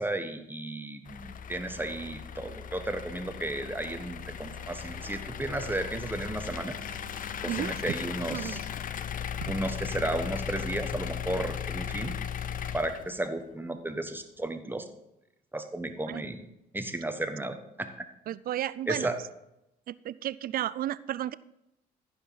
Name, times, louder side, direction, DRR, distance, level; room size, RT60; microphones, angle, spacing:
voice 1, 0.0-6.8 7.4-8.6 9.5-12.2 12.7-14.9 15.5-16.4 16.7-18.1 18.9-19.2, right 1 dB, 10° right, 7 dB, 1.4 m, -34 dB
sound 1, 1.1-13.4, left 8 dB, 45° left, 0.6 m, -37 dB
Bowed string instrument, 4.0-9.2, right 2 dB, 80° right, 1.9 m, -53 dB
voice 2, 8.3-8.6 9.4-9.5 16.1-16.2 18.3-19.1 19.9-21.3, right 12 dB, 50° right, 18 dB, 0.4 m, -33 dB
15.0 x 5.4 x 4.0 m, 0.85 s
hypercardioid pair, 55°, 19 cm